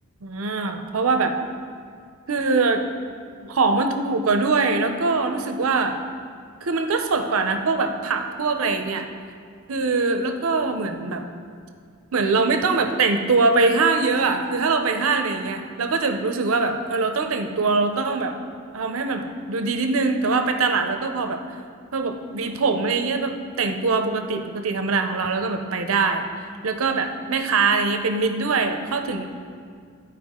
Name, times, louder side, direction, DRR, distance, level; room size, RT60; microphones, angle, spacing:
voice 1, 0.2-1.3 2.3-2.8 3.4-6.0 6.6-9.1 9.7-11.2 12.1-18.3 18.7-21.4 21.9-26.3 26.6-29.3, right 4 dB, 85° right, 6 dB, 0.6 m, -22 dB
13.0 x 4.6 x 3.7 m, 2.1 s
head